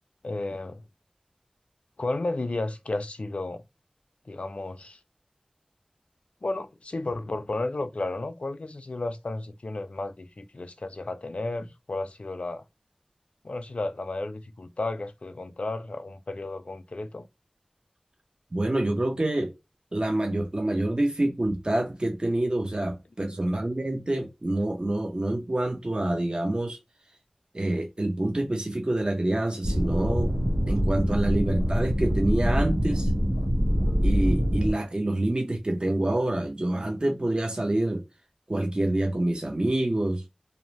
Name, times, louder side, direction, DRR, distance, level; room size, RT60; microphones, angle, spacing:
voice 1, 0.2-0.8 2.0-3.6 4.3-5.0 6.4-12.6 13.4-17.3, left 2 dB, 65° left, 0.4 m, -33 dB
voice 2, 18.5-19.5 19.9-26.8 27.5-30.3 30.7-33.1 34.0-38.0 38.5-40.2, right 1 dB, 45° right, 0.5 m, -27 dB
sound 1, 29.6-34.7, equal, 85° right, 1.0 m, -24 dB
2.5 x 2.0 x 3.0 m
wide cardioid pair, 45°, 2 cm